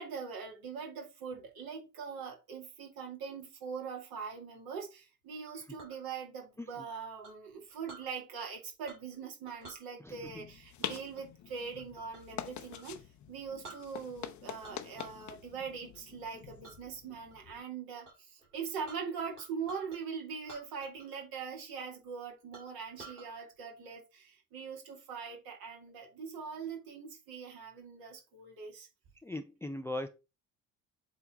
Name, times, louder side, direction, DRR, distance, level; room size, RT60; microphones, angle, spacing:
voice 1, 0.0-28.9, right 6 dB, 55° right, 2.3 m, -42 dB
Chink clink, 5.5-6.0 7.2-8.1 8.8-9.2 9.5-9.8 10.8-12.4 12.7-12.9 13.3-13.4 13.6-14.3 14.6-15.3 15.6-16.0 16.6-16.8 17.3-17.7 18.0-18.1 18.4-20.0 20.4-21.2 21.5-21.6 22.1-22.2 22.5-23.3, right 3 dB, 80° right, 2.4 m, -52 dB
sound 1, 10.1-17.6, left 11 dB, 40° left, 0.8 m, -46 dB
voice 2, 29.2-30.1, left 1 dB, 5° left, 0.5 m, -39 dB
7.9 x 3.5 x 4.3 m
figure-of-eight pair, 50°, 44 cm